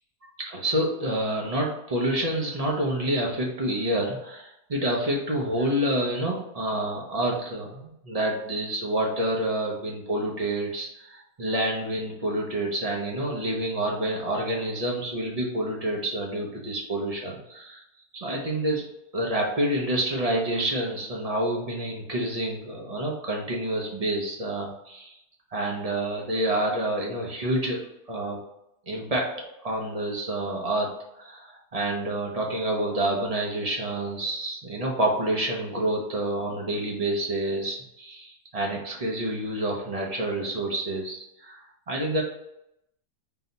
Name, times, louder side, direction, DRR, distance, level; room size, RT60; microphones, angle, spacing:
voice 1, 0.5-17.8 18.1-18.9 19.1-25.2 25.5-27.8 28.1-28.4 28.9-29.3 29.6-42.2, right 1 dB, 45° right, -1 dB, 0.4 m, -28 dB
3.9 x 2.7 x 4.0 m, 0.82 s
omnidirectional pair, 1.7 m